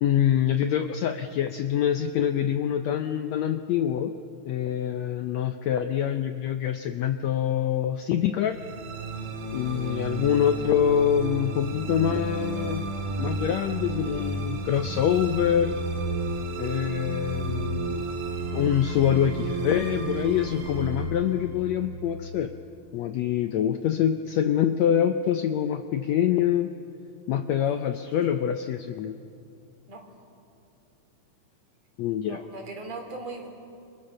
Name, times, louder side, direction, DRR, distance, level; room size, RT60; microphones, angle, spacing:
voice 1, 0.0-4.1 4.5-8.6 9.5-12.9 13.2-15.7 16.6-18.0 18.5-22.5 22.9-26.7 27.3-29.2 32.0-32.4, left 9 dB, 75° left, 8 dB, 1.6 m, -25 dB
sound 1, 8.5-22.9, right 2 dB, 70° right, 3.9 m, -32 dB
voice 2, 27.6-27.9 28.3-28.5 29.9-30.0 32.2-33.5, right 3 dB, 50° right, 2 dB, 4.9 m, -40 dB
30.0 x 27.0 x 6.7 m, 2.7 s
omnidirectional pair, 3.9 m